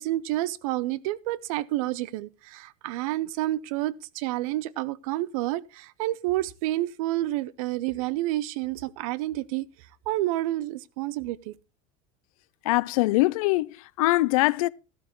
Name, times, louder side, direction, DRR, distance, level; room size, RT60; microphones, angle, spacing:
voice 1, 0.0-9.7 10.1-11.5, right 16 dB, 75° right, 0.7 m, -29 dB
voice 2, 12.6-14.7, left 20 dB, 80° left, 0.5 m, -23 dB
12.5 x 12.0 x 3.1 m
supercardioid pair, 135°, 18 cm